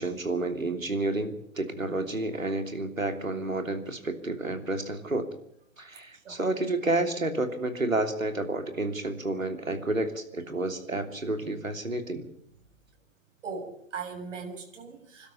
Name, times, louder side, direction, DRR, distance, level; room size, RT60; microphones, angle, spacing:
voice 1, 0.0-5.3 5.8-12.2, right 2 dB, 85° right, 7 dB, 3.2 m, -30 dB
voice 2, 13.4-15.3, right 5 dB, 65° right, 2 dB, 7.3 m, -39 dB
27.5 x 12.5 x 8.5 m, 0.74 s
figure-of-eight pair, 105°, 39 cm